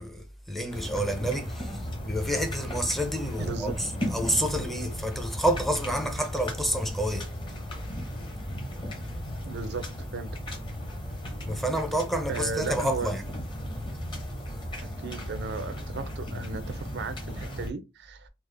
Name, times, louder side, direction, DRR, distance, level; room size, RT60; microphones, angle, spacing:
voice 1, 0.0-7.3 11.4-13.3, right 1 dB, ahead, 0.5 m, -29 dB
sound 1, 0.7-17.7, equal, 25° left, 0.9 m, -35 dB
voice 2, 3.4-3.7 9.5-10.3 12.3-13.1 15.0-18.3, right 4 dB, 55° right, 0.5 m, -35 dB
3.5 x 2.1 x 3.3 m
head